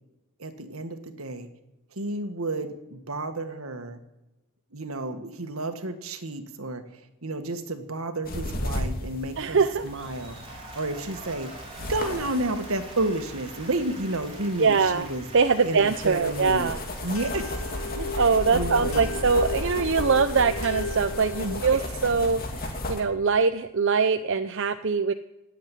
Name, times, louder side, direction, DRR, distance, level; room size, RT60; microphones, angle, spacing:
voice 1, 0.4-1.5 1.9-4.0 4.7-11.5 11.9-15.2 15.6-16.7 17.0-19.1 21.4-21.8, right 2 dB, 80° right, 8 dB, 1.7 m, -31 dB
sound 1, 8.2-23.0, left 1 dB, 45° left, 2.6 m, -35 dB
voice 2, 9.4-9.9 14.6-15.1 15.3-16.8 18.1-25.1, right 5 dB, 60° right, 9 dB, 0.7 m, -23 dB
Applause, 9.5-22.7, right 2 dB, 25° right, 3.8 m, -46 dB
sound 2, 17.1-21.9, left 3 dB, 70° left, 3.3 m, -36 dB
18.5 x 7.9 x 9.2 m, 0.98 s
head